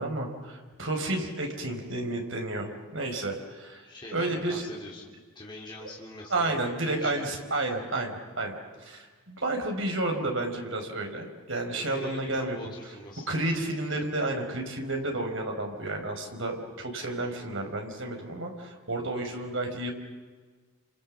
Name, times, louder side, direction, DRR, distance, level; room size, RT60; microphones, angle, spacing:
voice 1, 0.0-3.9 4.1-4.6 5.8-5.9 6.3-12.6 13.3-19.9, right 2 dB, 55° right, 3 dB, 4.7 m, -31 dB
voice 2, 3.8-7.3 11.8-13.4 19.3-19.5, left 1 dB, 20° left, -4 dB, 3.7 m, -43 dB
28.5 x 27.0 x 7.4 m, 1.4 s
head